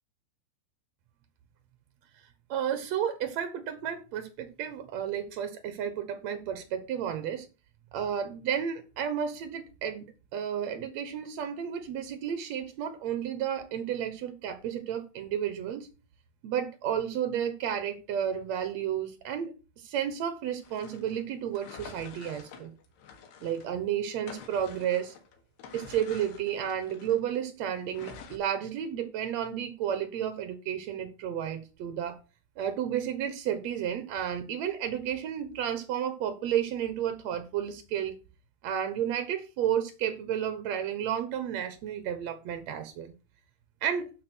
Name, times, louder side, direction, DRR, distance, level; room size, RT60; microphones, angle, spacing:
voice 1, 2.5-7.5 7.9-10.1 10.3-15.9 16.4-22.7 23.4-25.1 25.7-32.2 32.6-38.2 38.6-43.1 43.8-44.1, right 9 dB, 75° right, 1.6 m, -32 dB
sound 1, 20.6-23.8 24.1-27.4 27.9-28.4, left 6 dB, 90° left, 3.8 m, -48 dB
12.5 x 4.5 x 6.1 m
omnidirectional pair, 4.6 m